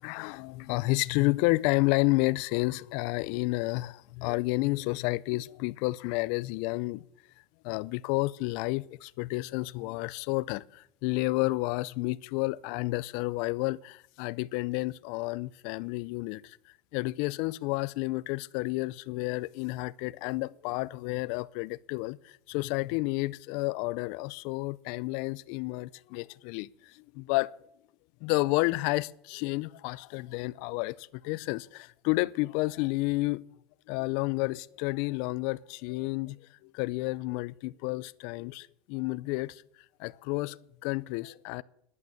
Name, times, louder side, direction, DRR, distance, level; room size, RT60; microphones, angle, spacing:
voice 1, 0.0-7.1 7.6-16.6 16.9-27.5 28.2-33.4 33.9-39.6 40.0-41.6, left 22 dB, 65° left, 0.4 m, -31 dB
10.5 x 8.8 x 8.1 m
supercardioid pair, 140°, 0 cm